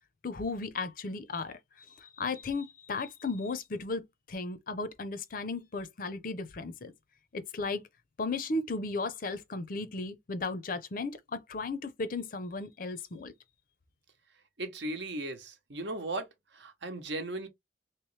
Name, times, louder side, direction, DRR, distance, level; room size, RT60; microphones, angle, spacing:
voice 1, 0.2-6.9 7.3-7.8 8.2-13.3, left 3 dB, 45° left, 0.5 m, -35 dB
voice 2, 14.6-16.3 16.5-17.5, right 2 dB, 70° right, 0.9 m, -36 dB
3.1 x 3.0 x 3.1 m
head